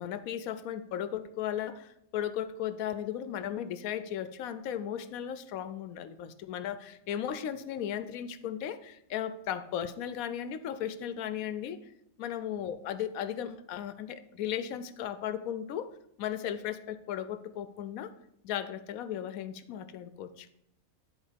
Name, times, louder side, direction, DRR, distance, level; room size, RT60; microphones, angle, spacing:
voice 1, 0.0-11.8 12.2-15.9 16.2-18.1 18.4-20.5, left 10 dB, 85° left, 12 dB, 1.0 m, -36 dB
10.0 x 4.2 x 5.0 m, 0.78 s
omnidirectional pair, 1.4 m